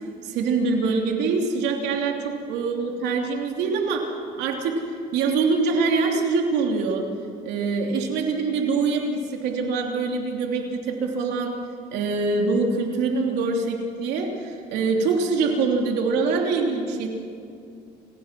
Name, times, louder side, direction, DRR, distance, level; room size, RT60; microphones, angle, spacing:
voice 1, 0.2-4.1 4.4-4.8 5.1-7.1 7.4-11.6 11.9-17.1, right 4 dB, 90° right, 1 dB, 3.0 m, -24 dB
29.5 x 16.0 x 6.1 m, 2.4 s
cardioid pair, 110°, 17 cm